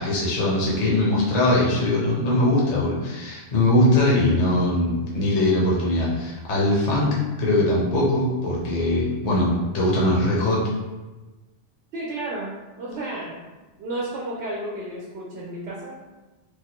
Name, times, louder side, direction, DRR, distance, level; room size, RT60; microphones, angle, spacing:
voice 1, 0.0-10.6, left 1 dB, 45° left, -4 dB, 0.7 m, -21 dB
voice 2, 11.9-13.4 13.8-16.0, right 1 dB, 70° right, -4 dB, 0.8 m, -32 dB
3.1 x 2.1 x 2.9 m, 1.2 s
omnidirectional pair, 1.2 m